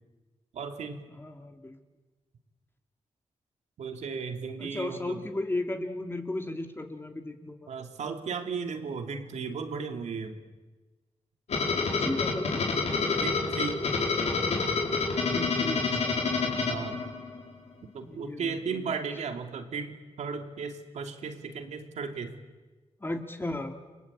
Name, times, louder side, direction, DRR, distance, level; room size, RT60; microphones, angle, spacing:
voice 1, 0.5-1.0 3.8-5.2 7.7-10.4 13.2-13.9 16.7-17.0 17.9-22.3, right 5 dB, 85° right, 5 dB, 2.8 m, -35 dB
voice 2, 1.2-1.8 4.6-7.7 11.8-12.7 15.3-16.2 18.0-18.7 23.0-23.8, left 2 dB, 20° left, 5 dB, 2.6 m, -35 dB
sound 1, 11.5-17.5, left 4 dB, 75° left, 4.8 m, -28 dB
30.0 x 21.0 x 8.7 m, 1.2 s
cardioid pair, 80°, 11 cm